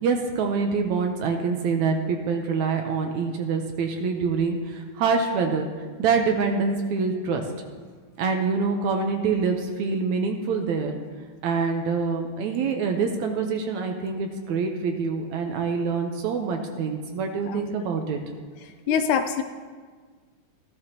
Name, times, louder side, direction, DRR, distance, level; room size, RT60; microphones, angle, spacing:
voice 1, 0.0-5.7 6.0-7.4 8.2-11.0 11.4-18.2 18.9-19.0, right 5 dB, 75° right, 4 dB, 2.0 m, -25 dB
voice 2, 18.9-19.4, left 7 dB, 80° left, 8 dB, 2.0 m, -23 dB
15.5 x 13.0 x 2.9 m, 1.5 s
omnidirectional pair, 3.8 m